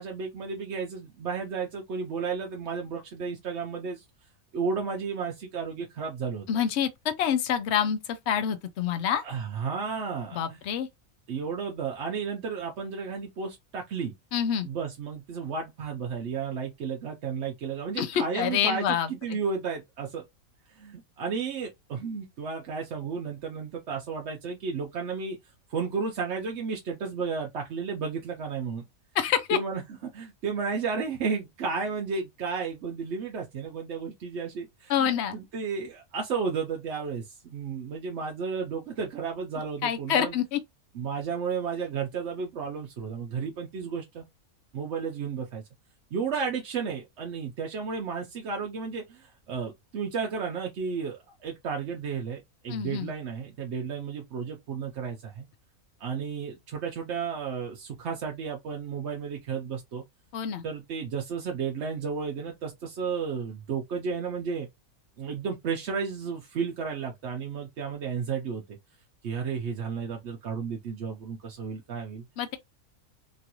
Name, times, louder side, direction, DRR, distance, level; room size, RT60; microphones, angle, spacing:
voice 1, 0.0-4.0 4.5-6.5 9.2-10.6 11.3-14.1 14.6-20.2 20.7-25.4 25.7-28.8 29.5-29.8 30.1-40.4 40.9-44.2 44.7-45.6 46.1-55.5 56.0-60.0 60.6-64.7 65.2-68.8 69.2-72.2, right 5 dB, 60° right, 0.9 m, -33 dB
voice 2, 6.5-9.2 10.3-10.9 14.3-14.7 18.0-19.4 29.1-29.6 34.9-35.4 39.8-40.6 52.7-53.1 60.3-60.6 72.4-72.6, left 8 dB, 65° left, 0.8 m, -27 dB
3.0 x 2.5 x 2.8 m
omnidirectional pair, 1.5 m